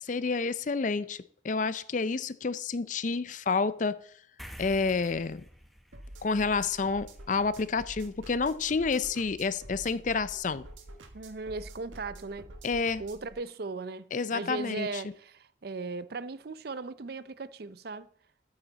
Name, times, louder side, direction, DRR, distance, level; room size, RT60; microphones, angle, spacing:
voice 1, 0.0-1.2 1.4-4.0 4.6-5.5 6.2-10.7 12.6-13.0 14.1-15.0, left 4 dB, 40° left, 0.4 m, -29 dB
sound 1, 4.4-11.2, equal, ahead, 0.8 m, -53 dB
sound 2, 5.9-13.3, right 1 dB, 90° right, 1.6 m, -48 dB
voice 2, 11.1-12.5 13.0-18.1, right 3 dB, 55° right, 0.5 m, -38 dB
13.0 x 8.9 x 4.0 m
head